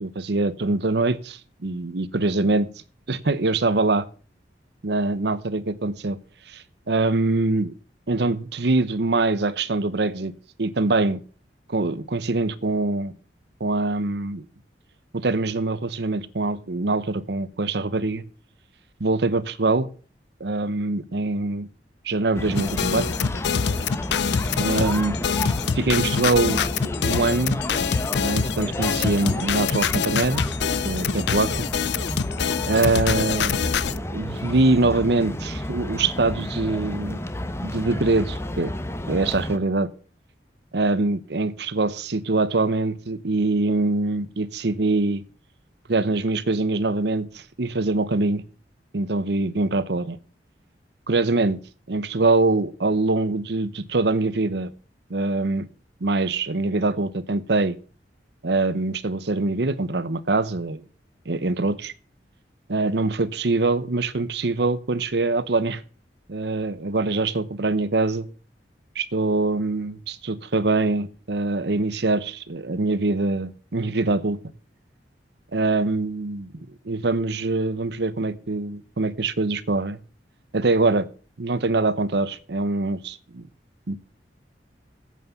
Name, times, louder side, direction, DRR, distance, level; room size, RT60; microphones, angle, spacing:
voice 1, 0.0-2.7 3.1-4.1 4.8-6.2 6.5-7.7 8.1-10.3 10.6-11.2 11.7-13.1 13.6-14.5 15.1-18.2 19.0-19.9 20.4-21.7 22.0-23.1 24.6-25.2 25.7-26.6 27.0-27.6 28.2-30.4 30.8-31.7 32.7-33.8 34.1-37.2 37.6-38.7 39.1-39.9 40.7-45.2 45.9-48.4 48.9-50.2 51.1-51.6 51.9-54.7 55.1-55.7 56.0-57.8 58.4-60.8 61.3-61.9 62.7-65.8 66.3-68.3 68.9-74.4 75.5-80.0 80.5-81.1 81.4-83.4 83.9-84.0, right 3 dB, 65° right, 0.9 m, -23 dB
sound 1, 22.3-39.6, left 1 dB, 15° left, 0.8 m, -31 dB
sound 2, 22.5-34.0, left 6 dB, 70° left, 0.5 m, -25 dB
9.4 x 8.5 x 6.9 m
head